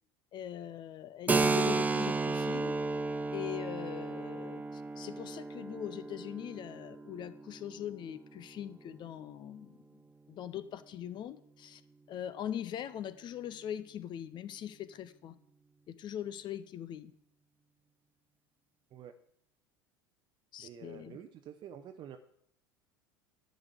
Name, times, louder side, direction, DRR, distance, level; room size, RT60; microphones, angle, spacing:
voice 1, 0.3-2.7 3.3-9.8 10.3-11.8 12.1-15.3 15.9-17.1 20.5-21.2, left 10 dB, 40° left, 14 dB, 0.8 m, -41 dB
Keyboard (musical), 1.3-8.6, right 3 dB, 15° right, 0.6 m, -33 dB
voice 2, 20.6-22.2, right 9 dB, 40° right, 6 dB, 0.8 m, -48 dB
11.0 x 5.3 x 8.2 m, 0.69 s
figure-of-eight pair, 75°, 12 cm